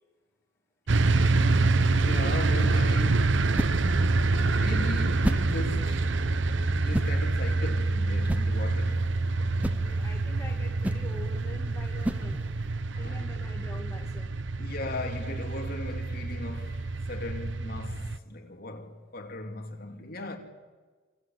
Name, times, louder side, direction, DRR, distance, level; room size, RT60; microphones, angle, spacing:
sound 1, 0.9-18.2, right 3 dB, 65° right, 0.8 m, -26 dB
voice 1, 1.8-3.7 4.5-6.1 6.7-9.6 12.9-13.2 14.6-20.4, left 2 dB, 50° left, 3.4 m, -38 dB
sound 2, 2.3-12.8, equal, 5° right, 0.8 m, -36 dB
voice 2, 9.6-12.4 13.0-14.3, left 1 dB, 15° left, 2.3 m, -45 dB
27.0 x 26.0 x 7.9 m
head